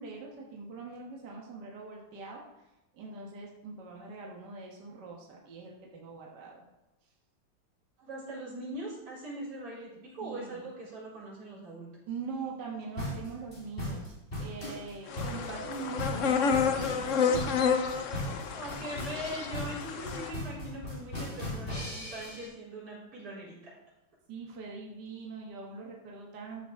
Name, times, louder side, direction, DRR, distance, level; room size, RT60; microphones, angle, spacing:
voice 1, 0.0-2.4 2.9-6.6 10.2-10.7 12.1-14.1 14.4-17.5 24.3-26.7, right 4 dB, 55° right, -1 dB, 2.0 m, -42 dB
voice 2, 8.0-11.9 18.5-23.8, right 1 dB, 90° right, -8 dB, 4.9 m, -41 dB
sound 1, 13.0-22.5, left 1 dB, 25° left, 3.1 m, -37 dB
sound 2, 15.1-20.3, left 6 dB, 70° left, 0.7 m, -30 dB
13.0 x 6.8 x 3.8 m, 0.98 s
omnidirectional pair, 2.4 m